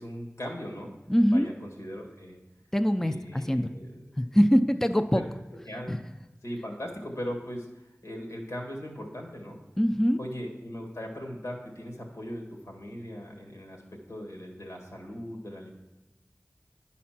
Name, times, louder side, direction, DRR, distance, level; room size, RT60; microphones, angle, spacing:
voice 1, 0.0-0.9 1.3-2.4 3.0-4.0 5.1-5.3 5.7-5.9 6.4-9.6 10.2-15.7, equal, 80° left, 1 dB, 1.8 m, -39 dB
voice 2, 1.1-1.5 2.7-3.7 4.2-5.2 5.9-6.0 9.8-10.2, equal, 10° left, 8 dB, 0.4 m, -23 dB
10.0 x 4.2 x 5.9 m, 1.0 s
wide cardioid pair, 45°, 5 cm